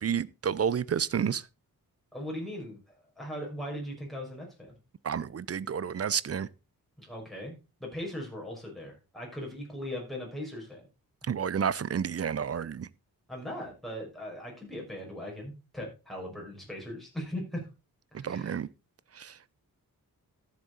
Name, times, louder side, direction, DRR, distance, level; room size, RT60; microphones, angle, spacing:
voice 1, 0.0-1.4 5.0-6.5 11.3-12.9 18.1-18.7 19.1-19.6, right 7 dB, 40° right, 0.6 m, -30 dB
voice 2, 2.1-4.8 7.0-7.5 7.8-10.9 13.3-17.7 18.1-18.6, equal, ahead, 5.7 m, -39 dB
13.0 x 7.6 x 4.0 m
wide cardioid pair, 100°, 36 cm